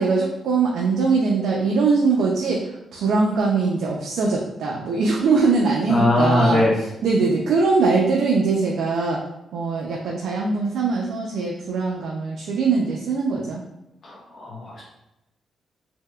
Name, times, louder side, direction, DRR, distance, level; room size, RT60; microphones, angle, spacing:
voice 1, 0.0-9.2 9.5-13.6, right 4 dB, 80° right, -2 dB, 0.4 m, -22 dB
voice 2, 5.9-6.7 14.0-14.8, left 1 dB, 40° left, -5 dB, 0.5 m, -20 dB
3.4 x 2.8 x 2.2 m, 0.90 s
wide cardioid pair, 155°, 0 cm